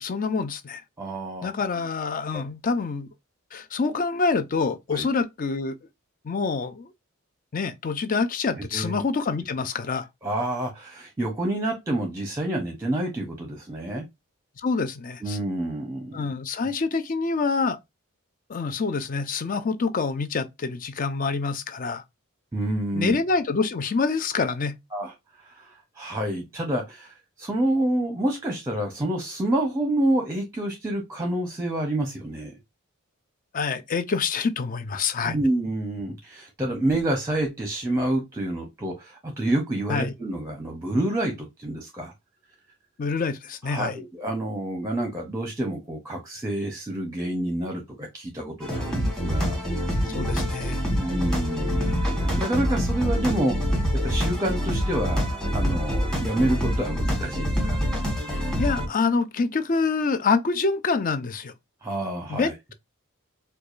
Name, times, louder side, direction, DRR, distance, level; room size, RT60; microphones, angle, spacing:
voice 1, 0.0-0.8 1.4-3.1 3.5-5.8 6.2-6.9 7.5-10.1 14.6-15.4 16.1-17.8 18.5-22.0 22.9-24.7 33.5-35.4 39.9-40.1 43.0-44.0 50.1-50.8 58.3-61.5 62.3-62.7, left 4 dB, 40° left, 0.5 m, -26 dB
voice 2, 1.0-1.5 2.3-2.4 4.9-5.1 8.5-9.0 10.2-14.1 15.2-16.3 22.5-23.2 24.9-25.1 25.4-32.5 35.2-42.1 43.6-49.6 50.9-53.6 53.9-55.3 55.5-57.8 61.8-62.5, right 1 dB, 15° right, 0.7 m, -28 dB
sound 1, 48.6-58.9, equal, 5° left, 1.2 m, -26 dB
4.6 x 2.3 x 2.4 m
head